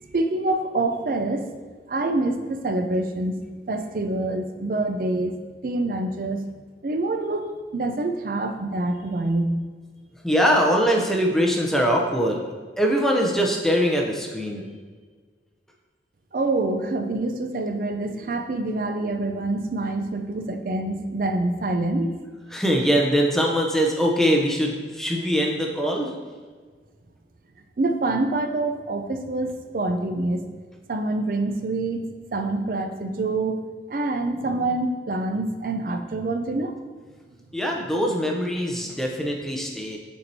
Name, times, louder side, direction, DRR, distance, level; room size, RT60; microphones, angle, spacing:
voice 1, 0.1-1.5 1.9-3.4 3.7-6.4 6.8-9.5 16.3-22.1 27.8-30.4 30.9-36.8, right 2 dB, 50° right, 7 dB, 0.4 m, -26 dB
voice 2, 10.2-12.4 12.8-14.7 22.5-26.2 37.5-40.0, equal, ahead, 0 dB, 0.6 m, -22 dB
8.3 x 4.4 x 2.7 m, 1.5 s
head